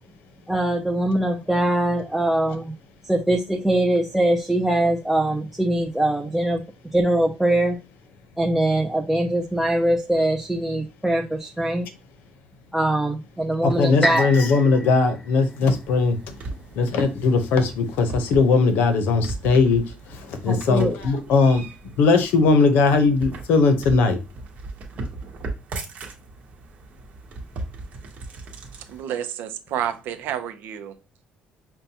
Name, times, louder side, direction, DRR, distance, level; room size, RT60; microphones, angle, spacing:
voice 1, 0.5-2.7 3.0-6.6 6.9-7.8 8.4-11.9 12.7-14.3 20.5-21.0, right 1 dB, 5° right, 0.4 m, -22 dB
voice 2, 13.6-16.2 16.8-21.6 22.0-24.2, left 4 dB, 80° left, 0.7 m, -19 dB
sound 1, 14.0-18.0 18.5-18.6, equal, 20° left, 0.8 m, -31 dB
sound 2, 15.8-29.0, right 3 dB, 50° right, 1.0 m, -38 dB
voice 3, 28.9-31.0, right 10 dB, 80° right, 0.5 m, -30 dB
5.3 x 2.2 x 2.8 m
cardioid pair, 140°, 3 cm